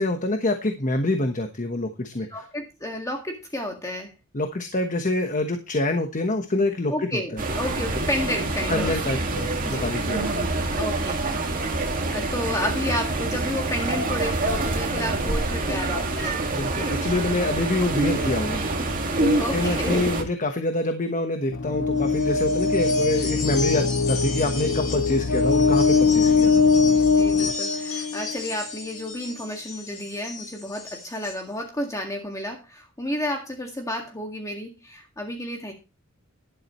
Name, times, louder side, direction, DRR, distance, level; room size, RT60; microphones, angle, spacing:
voice 1, 0.0-2.4 4.3-7.4 8.7-10.3 16.5-18.6 19.2-26.6, left 2 dB, 35° left, 6 dB, 1.2 m, -26 dB
voice 2, 2.3-4.1 6.9-9.0 9.7-9.9 10.8-11.2 12.1-16.4 19.3-20.1 27.0-35.7, left 1 dB, 15° left, 2 dB, 1.9 m, -31 dB
sound 1, 7.4-20.2, right 2 dB, 40° right, 2.0 m, -26 dB
sound 2, 21.5-28.5, left 4 dB, 60° left, 0.7 m, -21 dB
sound 3, 22.0-31.4, left 4 dB, 75° left, 4.7 m, -35 dB
12.0 x 11.5 x 3.0 m, 0.29 s
head